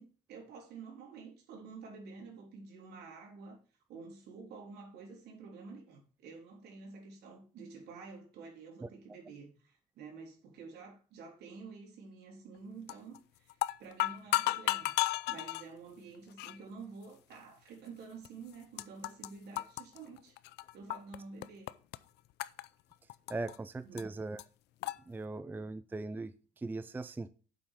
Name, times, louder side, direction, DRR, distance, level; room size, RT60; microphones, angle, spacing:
voice 1, 0.0-3.6 3.9-15.0 15.3-20.4 20.7-21.7 23.8-24.1, right 4 dB, 75° right, 3.6 m, -50 dB
sound 1, 12.9-13.2 13.5-15.6 16.4-16.6 17.3-17.4 18.2-18.3 18.5-19.3 19.6-21.2 21.4-22.0 22.4-23.6 24.0-24.1 24.4-24.5 24.8-25.0, left 17 dB, 80° left, 0.5 m, -33 dB
voice 2, 23.3-24.4 25.1-27.3, right 3 dB, 10° right, 0.4 m, -39 dB
7.5 x 5.4 x 6.3 m
cardioid pair, 110°, 17 cm